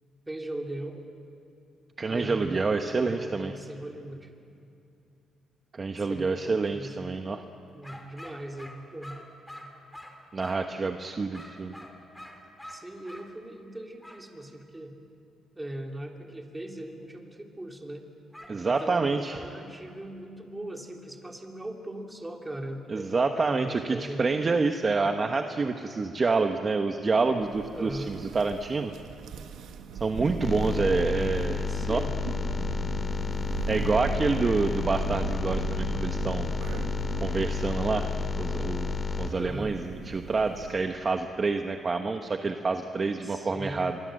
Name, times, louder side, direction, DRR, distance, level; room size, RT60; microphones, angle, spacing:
voice 1, 0.3-1.1 2.0-4.3 5.9-7.2 7.7-9.2 12.7-15.0 15.5-18.1 18.6-24.3 27.7-28.1 31.7-32.1 39.4-39.7 43.2-43.9, right 1 dB, 15° right, 2 dB, 3.1 m, -39 dB
voice 2, 2.0-3.5 5.7-7.4 10.3-11.7 18.5-19.4 22.9-28.9 29.9-32.0 33.7-36.5 37.2-38.1 38.4-44.0, right 4 dB, 35° right, 6 dB, 1.2 m, -27 dB
sound 1, 7.8-10.7 11.3-13.3 14.0-14.2 18.3-19.0, equal, 5° left, 3.7 m, -46 dB
Thunder, 27.4-41.0, right 7 dB, 80° right, 1.6 m, -38 dB
sound 2, 30.4-39.3, left 5 dB, 40° left, 2.5 m, -31 dB
25.5 x 23.0 x 7.7 m, 2.6 s
cardioid pair, 90°, 0 cm